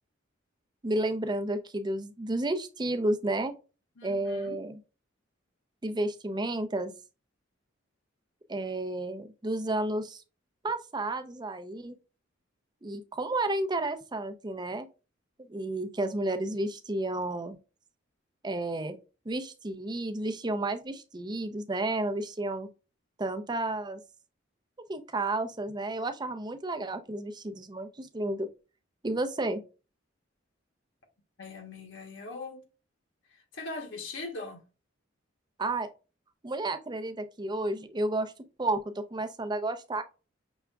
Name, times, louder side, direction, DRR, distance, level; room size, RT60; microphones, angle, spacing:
voice 1, 0.8-3.5 4.0-4.8 5.8-6.9 8.5-10.2 10.6-11.9 12.8-14.9 15.5-17.6 18.4-19.0 19.3-22.7 23.2-24.0 24.9-28.5 29.0-29.6 35.6-35.9 36.4-38.3 38.6-40.0, right 2 dB, 20° right, 0.5 m, -31 dB
voice 2, 4.0-4.6 31.4-32.6 33.3-34.6, left 3 dB, 65° left, 1.1 m, -41 dB
6.1 x 3.5 x 2.3 m
head